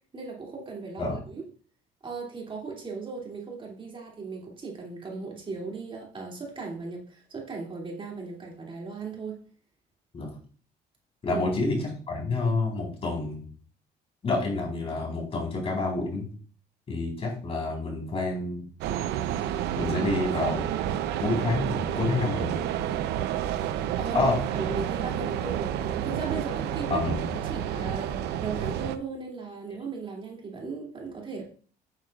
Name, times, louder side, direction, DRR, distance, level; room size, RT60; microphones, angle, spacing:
voice 1, 0.1-1.4 2.0-9.4 11.3-11.4 24.0-31.4, right 4 dB, 30° right, -2 dB, 2.7 m, -37 dB
voice 2, 11.2-11.8 12.1-13.4 14.2-16.3 16.9-18.6 19.8-20.6 21.2-22.6 24.1-24.4 26.9-27.3, left 3 dB, 35° left, 0 dB, 4.1 m, -28 dB
sound 1, 18.8-29.0, right 10 dB, 85° right, 0.7 m, -30 dB
9.0 x 8.9 x 2.4 m, 0.43 s
cardioid pair, 110°, 17 cm